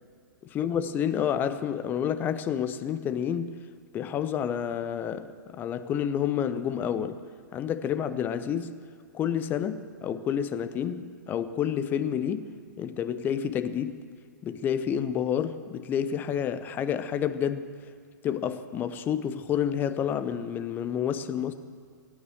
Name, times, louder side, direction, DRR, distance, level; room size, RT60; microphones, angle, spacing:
voice 1, 0.5-3.6 3.9-7.2 7.5-8.7 9.1-12.5 12.8-14.0 14.4-17.7 18.2-21.5, left 9 dB, 20° left, 0.6 m, -29 dB
18.0 x 9.5 x 7.7 m
figure-of-eight pair, 115°, 10 cm